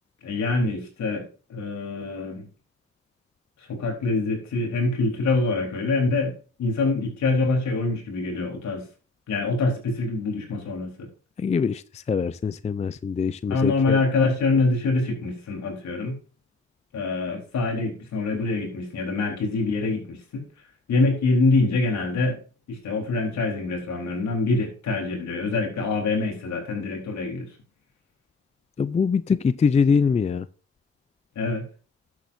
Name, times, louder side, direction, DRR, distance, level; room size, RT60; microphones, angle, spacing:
voice 1, 0.2-2.5 3.6-8.8 9.3-11.1 13.5-16.2 16.9-20.4 20.9-22.4 22.7-27.5 31.4-31.6, left 3 dB, 65° left, 4.0 m, -25 dB
voice 2, 11.4-14.0 28.8-30.5, left 5 dB, 25° left, 0.4 m, -23 dB
12.0 x 8.5 x 2.7 m
cardioid pair, 90°, 30 cm